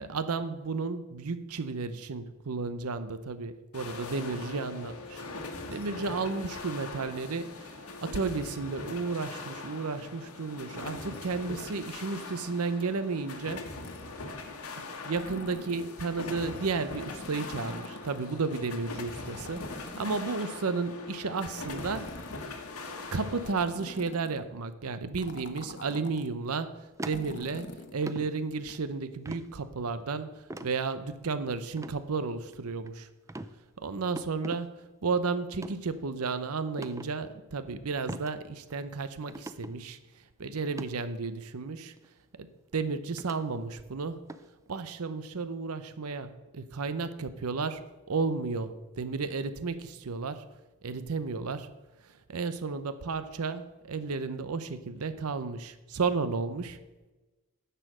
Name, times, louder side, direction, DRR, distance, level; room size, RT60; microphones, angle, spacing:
voice 1, 0.0-5.2 5.7-7.7 8.0-13.7 14.8-22.1 23.1-33.1 33.8-34.8 35.0-40.0 40.4-41.9 42.3-44.2 44.7-50.4 50.8-51.7 52.3-56.8, right 4 dB, 80° right, 12 dB, 0.7 m, -33 dB
sound 1, 3.7-23.5, left 3 dB, 80° left, 1.4 m, -41 dB
sound 2, 13.8-14.2 15.0-16.0 16.9-18.3 19.3-20.7 21.4-22.7 23.4-24.4 25.2-26.3 27.0-28.0 28.7-28.8, left 2 dB, 55° left, 0.9 m, -45 dB
sound 3, 27.0-27.7 28.0-28.3 29.3-29.5 30.5-30.7 31.7-32.0 32.5-32.9 33.3-33.5 34.2-34.6 35.5-35.8 36.8-37.1 38.1-38.3 38.7-38.8 39.3-39.7 40.6-40.9 42.0-42.1 43.2-43.4 44.3-44.5, right 2 dB, 15° right, 0.4 m, -40 dB
10.0 x 6.8 x 6.2 m, 1.1 s
head